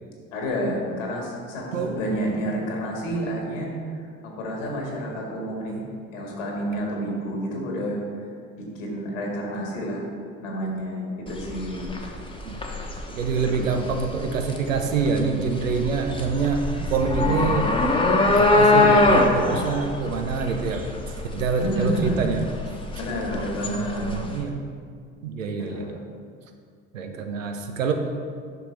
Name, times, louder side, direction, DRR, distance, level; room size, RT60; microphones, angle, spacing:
voice 1, 0.3-3.7 4.2-5.9 6.1-8.3 8.6-10.0 10.4-11.9 21.5-22.2 23.0-24.2 25.6-25.9, equal, 70° left, -1 dB, 1.9 m, -29 dB
voice 2, 1.7-2.4 12.4-17.8 18.4-20.9 21.2-22.4 23.3-24.6 25.2-26.0 26.9-27.9, right 5 dB, 80° right, 5 dB, 0.7 m, -26 dB
sound 1, 11.3-24.4, left 2 dB, 15° left, 1.0 m, -23 dB
9.3 x 6.3 x 3.3 m, 2.2 s
figure-of-eight pair, 65°, 39 cm